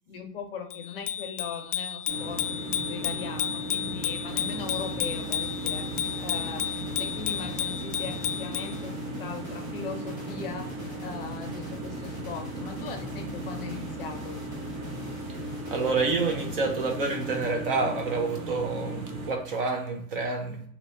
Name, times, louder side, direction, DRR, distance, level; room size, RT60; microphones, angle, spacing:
voice 1, 0.1-5.9 6.2-14.4, left 5 dB, 40° left, 0.6 m, -39 dB
Bicycle bell, 0.7-8.8, left 10 dB, 85° left, 0.6 m, -32 dB
sound 1, 2.1-19.3, right 1 dB, 65° right, 1.2 m, -37 dB
sound 2, 4.3-17.9, right 2 dB, 10° right, 1.2 m, -43 dB
voice 2, 15.7-20.6, right 3 dB, 40° right, 0.5 m, -28 dB
2.9 x 2.7 x 3.3 m
supercardioid pair, 170°, 45 cm